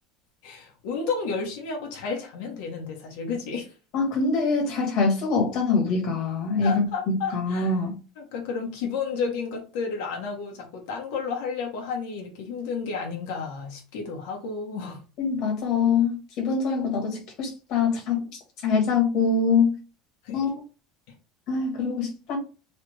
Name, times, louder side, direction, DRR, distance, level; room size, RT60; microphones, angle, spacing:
voice 1, 0.4-3.7 6.6-7.7 8.2-15.0 20.2-20.5, left 5 dB, 70° left, 1.1 m, -32 dB
voice 2, 3.9-7.9 15.2-18.3 18.6-19.8 20.3-20.5 21.5-22.4, left 4 dB, 45° left, 1.3 m, -24 dB
3.2 x 2.5 x 3.2 m
cardioid pair, 165°, 0 cm